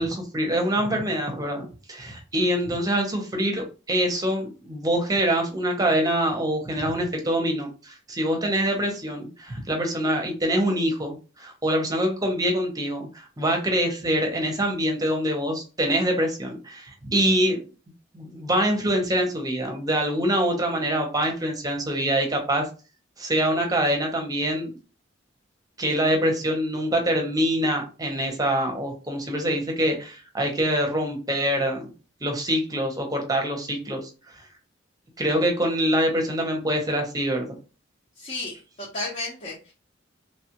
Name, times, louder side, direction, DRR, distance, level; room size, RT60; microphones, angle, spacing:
voice 1, 0.0-17.6 18.1-22.7 23.2-24.7 25.8-31.8 32.2-34.1 35.2-37.5, equal, 20° right, 2 dB, 0.8 m, -25 dB
voice 2, 38.2-39.7, left 2 dB, 40° left, -5 dB, 0.8 m, -33 dB
3.1 x 2.4 x 2.9 m, 0.33 s
head